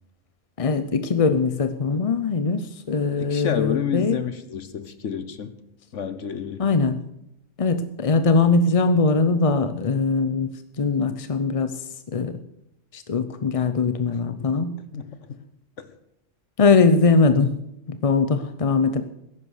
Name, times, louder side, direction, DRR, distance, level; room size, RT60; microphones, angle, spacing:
voice 1, 0.6-4.2 6.6-7.0 7.6-10.5 10.8-11.8 12.1-12.4 12.9-14.8 16.6-17.6 17.9-19.0, left 4 dB, 40° left, 9 dB, 0.6 m, -21 dB
voice 2, 3.2-5.5 5.9-6.7 14.4-14.5 14.9-15.4 15.8-15.9, left 7 dB, 70° left, 12 dB, 1.3 m, -30 dB
14.5 x 11.0 x 6.5 m, 0.82 s
omnidirectional pair, 1.3 m